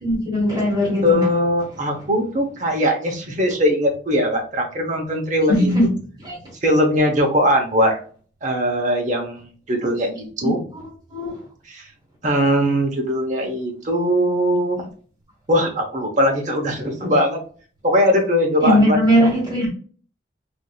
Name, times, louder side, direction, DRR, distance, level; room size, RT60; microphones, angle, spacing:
voice 1, 0.0-1.3 5.5-5.9 6.2-6.4 10.4-10.8 11.1-11.4 18.6-19.7, equal, 25° right, 1.5 m, -19 dB
voice 2, 1.0-5.7 6.6-8.0 8.4-10.6 11.7-11.8 12.2-14.9 15.5-17.4 17.8-19.0, equal, 40° right, 0.8 m, -20 dB
3.4 x 2.5 x 2.3 m
head